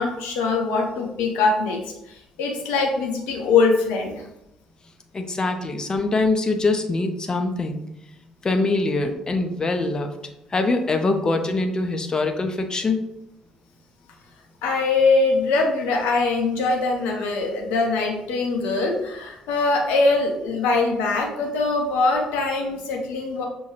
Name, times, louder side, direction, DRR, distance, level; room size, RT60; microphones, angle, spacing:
voice 1, 0.0-1.8 2.1-4.2 14.6-23.4, left 3 dB, 65° left, 1 dB, 0.7 m, -22 dB
voice 2, 5.1-7.8 8.4-10.1 10.5-13.0, left 3 dB, 30° left, 5 dB, 0.6 m, -23 dB
5.6 x 2.6 x 3.1 m, 0.84 s
figure-of-eight pair, 45°, 3 cm